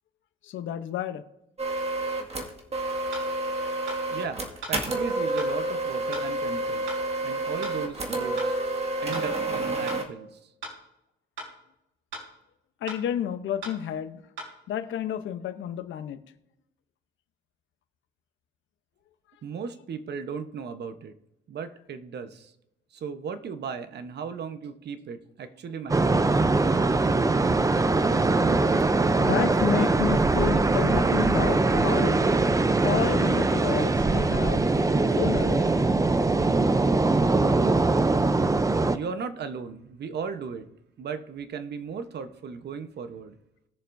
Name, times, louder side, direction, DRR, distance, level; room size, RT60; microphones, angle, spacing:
voice 1, 0.4-1.2 12.8-14.2 14.7-16.2 29.2-32.2 32.8-34.6 35.1-35.7, left 10 dB, 75° left, 11 dB, 0.9 m, -30 dB
sound 1, 1.6-10.0, right 2 dB, 30° right, 2.0 m, -29 dB
sound 2, 3.1-3.3 3.9-4.0 4.6-4.8 5.4-5.5 6.1-6.3 6.9-7.0 7.6-7.8 8.4-8.5 9.1-9.3 9.9-10.0 10.6-10.8 11.4-11.5 12.1-12.3 12.9-13.0 13.6-13.8 14.4-14.5, right 2 dB, 80° right, 3.6 m, -38 dB
voice 2, 4.1-8.6 9.0-10.4 19.4-21.1 21.5-22.5 22.9-26.4 38.9-40.7 41.0-43.4, right 6 dB, 60° right, 9 dB, 1.0 m, -36 dB
sound 3, 25.9-39.0, right 3 dB, 15° right, 0.6 m, -22 dB
20.0 x 6.8 x 2.7 m, 0.87 s
cardioid pair, 90°, 20 cm